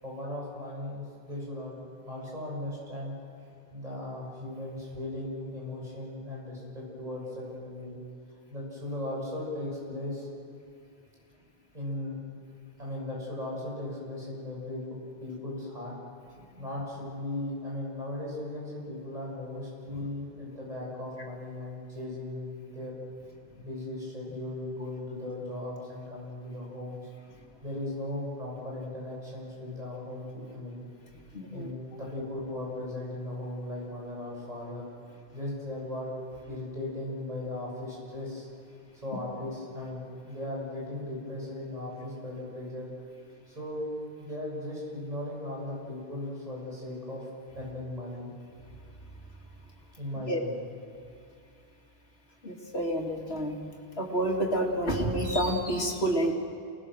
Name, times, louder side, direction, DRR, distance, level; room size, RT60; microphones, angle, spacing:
voice 1, 0.0-3.1 3.7-8.0 8.5-10.3 11.7-12.2 12.8-15.9 16.6-23.0 23.6-27.0 27.6-30.8 31.5-34.8 35.3-36.1 36.5-38.5 38.9-42.9 43.5-43.9 44.2-47.2 47.5-48.3 50.0-50.5, left 1 dB, 40° right, -4 dB, 6.7 m, -37 dB
voice 2, 31.3-31.7 50.3-50.4 52.4-53.6 54.0-56.3, right 1 dB, 90° left, 0 dB, 2.9 m, -28 dB
29.5 x 19.0 x 6.4 m, 2.5 s
omnidirectional pair, 1.0 m